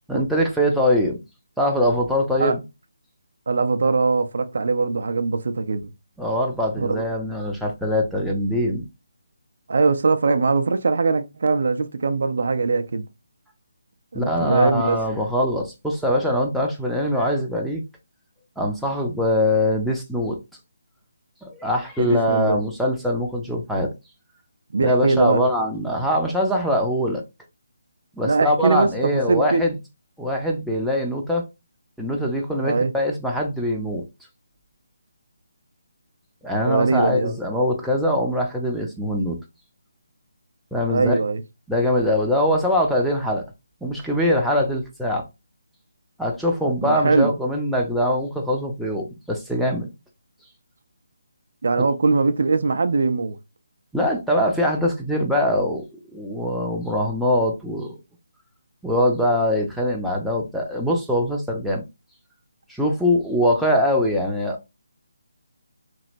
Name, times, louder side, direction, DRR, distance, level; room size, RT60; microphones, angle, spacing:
voice 1, 0.1-1.2 1.6-2.6 6.2-8.9 14.1-17.8 18.6-20.4 21.4-23.9 24.8-27.2 28.2-29.7 30.2-31.4 32.0-34.0 36.4-39.4 40.7-41.2 41.7-43.4 43.8-45.2 46.2-49.9 53.9-55.8 56.1-58.0 58.8-61.8 62.7-64.7, left 1 dB, ahead, 0.5 m, -22 dB
voice 2, 3.5-5.9 6.8-7.0 9.7-13.0 14.1-15.0 22.0-22.6 24.7-25.4 28.2-29.7 32.6-32.9 36.7-37.3 40.9-41.4 46.8-47.3 51.6-53.4, right 4 dB, 55° right, 0.4 m, -21 dB
3.0 x 2.7 x 2.5 m
figure-of-eight pair, 145°, 0 cm